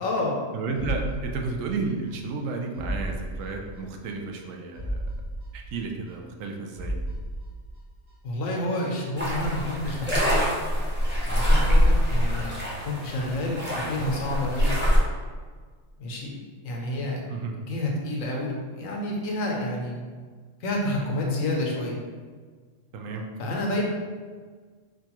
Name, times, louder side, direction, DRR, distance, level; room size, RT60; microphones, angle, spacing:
voice 1, 0.0-0.4 8.2-10.5 11.2-12.6 12.8-14.8 16.0-16.3 16.6-17.2 17.5-20.0 20.6-21.9 23.4-23.8, left 1 dB, 85° left, -1 dB, 1.2 m, -29 dB
voice 2, 0.5-5.0 5.5-7.0 17.3-17.5 22.9-23.3, right 4 dB, 85° right, 2 dB, 1.0 m, -32 dB
sound 1, 0.7-2.1 2.4-2.5 2.7-4.1 4.4-4.5 4.7-6.5 6.7-8.1 8.4-8.5, right 1 dB, 55° right, 1.4 m, -34 dB
sound 2, 9.2-15.0, equal, 10° right, 0.7 m, -24 dB
4.7 x 2.3 x 2.9 m, 1.5 s
omnidirectional pair, 1.3 m